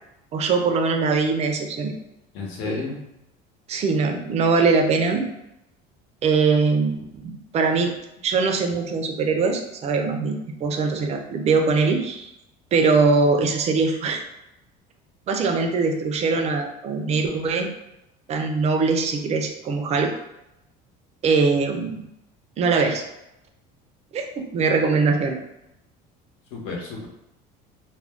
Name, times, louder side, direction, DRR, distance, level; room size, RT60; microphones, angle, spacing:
voice 1, 0.3-2.0 2.6-2.8 3.7-5.3 6.2-7.9 8.2-12.3 12.7-14.2 15.3-17.7 18.3-20.1 21.2-22.0 22.6-23.0 24.1-24.3 24.5-25.4, right 4 dB, 35° right, 4 dB, 0.4 m, -22 dB
voice 2, 2.3-3.0 26.5-27.1, left 4 dB, 70° left, -1 dB, 0.9 m, -31 dB
2.4 x 2.2 x 3.4 m, 0.87 s
cardioid pair, 135°, 20 cm